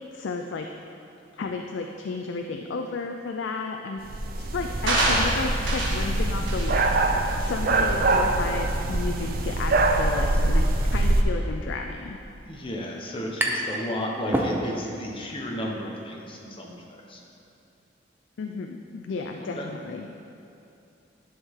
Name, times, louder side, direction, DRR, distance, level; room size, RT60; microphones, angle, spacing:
voice 1, 0.1-0.8 1.4-4.0 4.4-12.2 18.4-20.1, left 4 dB, 70° left, 3 dB, 0.4 m, -33 dB
sound 1, 4.0-11.2, right 2 dB, 50° right, 0.5 m, -24 dB
sound 2, 4.9-6.1 6.5-6.7 7.3-7.4, right 1 dB, 90° right, 1.5 m, -25 dB
voice 2, 12.4-17.2 19.4-19.7, equal, 30° left, -1 dB, 1.0 m, -34 dB
sound 3, 13.4-13.8 14.1-15.0, right 1 dB, 10° right, 0.7 m, -28 dB
11.0 x 6.3 x 3.6 m, 2.7 s
head